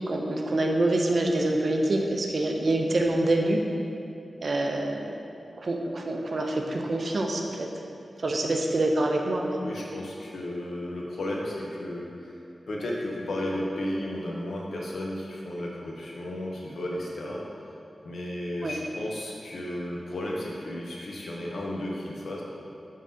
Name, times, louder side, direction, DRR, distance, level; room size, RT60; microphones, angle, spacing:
voice 1, 0.1-3.6 4.4-5.1 5.6-7.7 8.2-9.6 18.6-18.7, right 1 dB, 60° right, 2 dB, 0.4 m, -26 dB
voice 2, 9.6-17.4 18.0-22.4, left 1 dB, 85° left, -3 dB, 0.6 m, -34 dB
5.4 x 3.6 x 2.6 m, 2.6 s
wide cardioid pair, 75°, 0 cm